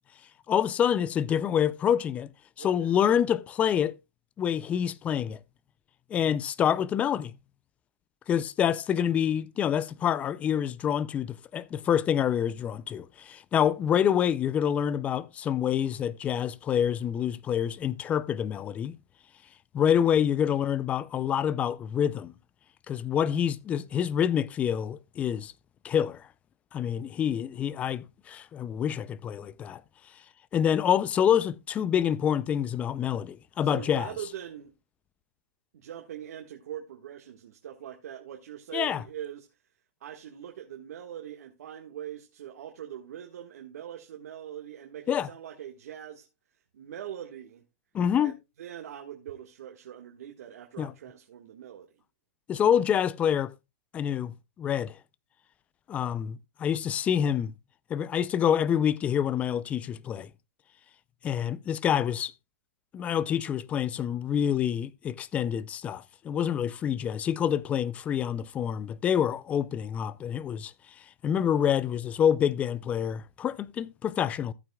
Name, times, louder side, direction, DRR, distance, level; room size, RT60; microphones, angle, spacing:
voice 1, 0.5-2.3 2.6-3.9 4.4-5.4 6.1-7.4 8.3-19.0 19.7-22.3 22.9-25.5 25.8-26.3 26.7-29.8 30.5-34.1 38.7-39.0 45.1-45.3 47.9-48.3 50.8-50.9 52.5-53.5 53.9-55.0 55.9-57.5 57.9-60.3 61.2-62.3 62.9-70.7 71.2-74.5, left 9 dB, 15° left, 0.4 m, -27 dB
voice 2, 2.6-3.0 21.2-21.3 33.6-34.7 35.7-39.5 40.0-46.3 46.7-47.6 48.2-51.9, right 10 dB, 70° right, 1.6 m, -42 dB
14.5 x 9.0 x 2.3 m
hypercardioid pair, 155°, 9 cm